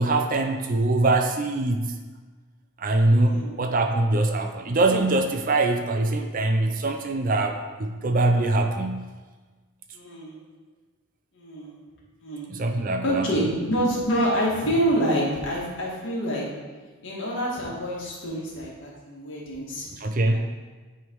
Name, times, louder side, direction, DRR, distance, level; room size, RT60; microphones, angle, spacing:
voice 1, 0.0-1.9 2.8-9.1 12.5-13.3 20.0-20.4, right 2 dB, 40° right, 5 dB, 0.5 m, -23 dB
voice 2, 3.2-3.5 9.9-10.4 11.3-11.7 12.2-12.5 13.0-16.5 17.0-19.9 20.3-20.4, equal, 55° left, -4 dB, 1.9 m, -27 dB
9.4 x 3.4 x 4.6 m, 1.3 s
head